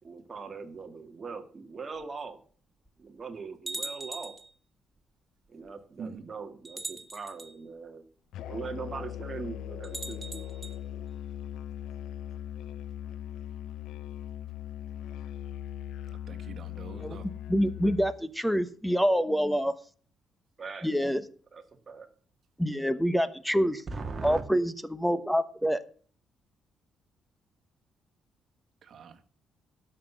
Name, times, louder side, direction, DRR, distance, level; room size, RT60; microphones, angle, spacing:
voice 1, 0.0-2.4 3.0-4.3 5.5-8.0 8.4-10.4 20.6-20.9 21.5-22.1 23.9-24.4, right 4 dB, 35° right, 5 dB, 1.8 m, -40 dB
sound 1, 2.0-2.1 2.9-3.0 3.7-4.5 5.7-5.8 6.6-7.5 9.8-10.7, right 2 dB, 15° right, 1.8 m, -40 dB
Musical instrument, 8.3-18.2, left 10 dB, 85° left, 0.5 m, -39 dB
voice 2, 16.1-17.3 28.8-29.2, right 6 dB, 60° right, 7 dB, 1.6 m, -44 dB
voice 3, 17.5-19.7 20.8-21.2 22.6-23.8 24.2-25.8, equal, ahead, 14 dB, 1.1 m, -26 dB
12.5 x 5.9 x 8.0 m, 0.44 s
cardioid pair, 90°, 0 cm